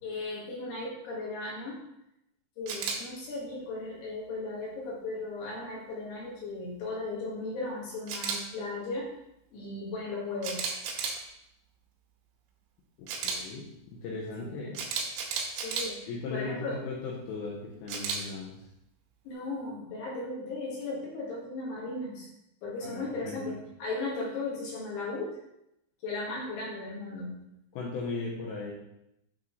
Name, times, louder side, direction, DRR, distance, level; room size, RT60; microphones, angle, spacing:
voice 1, 0.0-1.8 2.6-9.1 9.5-10.7 14.4-14.6 15.6-16.8 19.3-22.3 22.6-25.4 26.0-27.4, left 2 dB, 65° left, -4 dB, 3.5 m, -36 dB
Camera, 2.7-3.0 8.1-8.4 10.4-11.2 13.1-13.4 14.7-15.9 17.9-18.2, right 5 dB, 75° right, 3.0 m, -32 dB
voice 2, 13.0-14.8 16.1-18.6 22.8-23.4 27.7-28.7, left 3 dB, 80° left, -5 dB, 3.5 m, -37 dB
8.8 x 4.2 x 3.1 m, 0.82 s
omnidirectional pair, 5.7 m